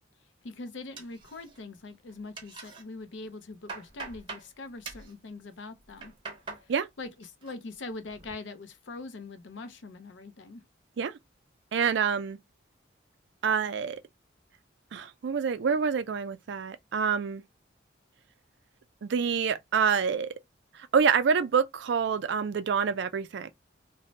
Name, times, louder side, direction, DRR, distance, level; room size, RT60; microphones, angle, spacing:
voice 1, 0.4-6.1 7.0-10.6, left 3 dB, 70° left, 0.5 m, -42 dB
sound 1, 1.0-1.8 2.1-2.8 3.3-4.5 4.8-5.1 5.8-6.7 7.0-7.5 7.9-8.3, right 4 dB, 25° right, 0.7 m, -43 dB
voice 2, 11.7-12.4 13.4-14.0 14.9-17.4 19.0-20.3 20.7-23.5, right 6 dB, 65° right, 0.4 m, -27 dB
2.6 x 2.1 x 3.0 m
head